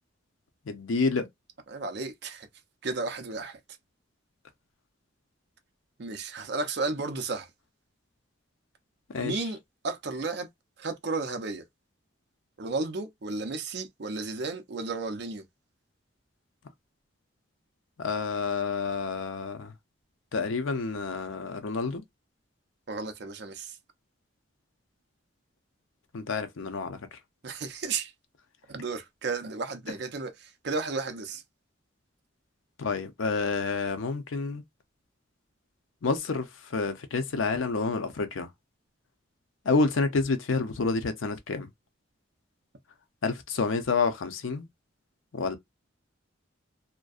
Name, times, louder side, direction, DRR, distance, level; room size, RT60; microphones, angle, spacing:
voice 1, 0.7-1.3 9.1-9.4 18.0-19.7 20.3-22.0 26.1-27.0 32.8-34.6 36.0-38.5 39.6-41.7 43.2-44.7 45.3-45.6, left 4 dB, 85° left, 0.6 m, -29 dB
voice 2, 1.7-2.5 2.8-3.6 6.0-7.5 9.2-9.6 9.8-10.5 10.8-11.6 12.6-15.4 22.9-23.8 27.4-28.1 28.7-31.4, right 3 dB, 60° right, 0.5 m, -33 dB
2.5 x 2.1 x 2.4 m
head